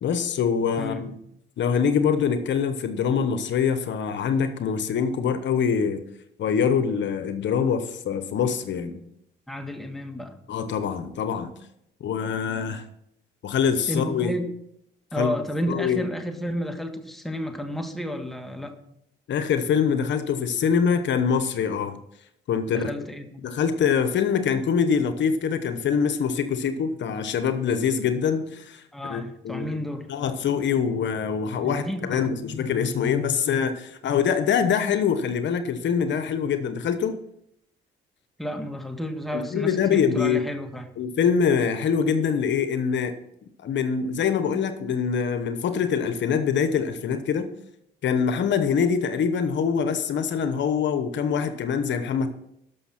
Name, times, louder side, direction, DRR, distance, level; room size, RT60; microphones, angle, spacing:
voice 1, 0.0-1.2 1.6-6.0 6.4-9.0 10.5-11.5 12.0-12.8 13.4-14.3 15.2-15.4 15.7-16.1 19.3-22.0 22.5-22.9 23.4-29.8 30.1-37.2 39.3-40.4 41.0-43.1 43.6-47.5 48.0-52.3, left 7 dB, 65° left, 9 dB, 1.0 m, -24 dB
voice 2, 0.8-1.1 9.5-10.3 13.9-14.5 15.1-18.7 22.7-23.5 28.9-30.1 31.6-32.2 38.4-41.0, equal, ahead, 4 dB, 1.6 m, -31 dB
12.5 x 6.3 x 5.9 m, 0.78 s
cardioid pair, 90°, 20 cm